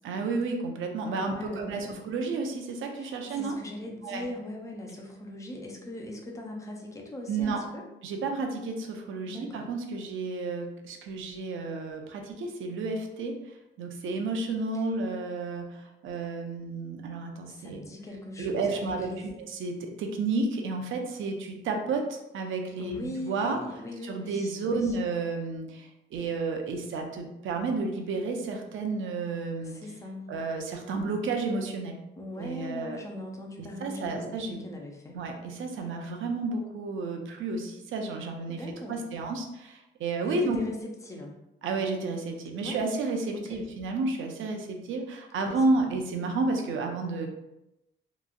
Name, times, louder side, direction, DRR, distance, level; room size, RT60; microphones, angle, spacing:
voice 1, 0.0-3.5 4.0-4.3 7.3-7.6 8.0-13.4 13.8-17.8 18.4-19.1 19.5-23.6 24.0-29.8 30.3-32.0 32.4-33.0 33.8-34.6 35.1-38.6 38.9-40.6 41.6-47.3, right 3 dB, 80° right, 3 dB, 0.5 m, -31 dB
voice 2, 1.2-2.0 3.0-7.8 9.3-9.7 14.7-14.8 17.5-19.4 22.8-25.0 29.6-30.3 32.2-35.2 38.5-39.0 40.3-41.3 42.6-42.8 43.3-43.6 45.4-45.9, left 1 dB, 15° left, 0 dB, 0.4 m, -40 dB
2.9 x 2.3 x 2.5 m, 0.92 s
wide cardioid pair, 170°, 20 cm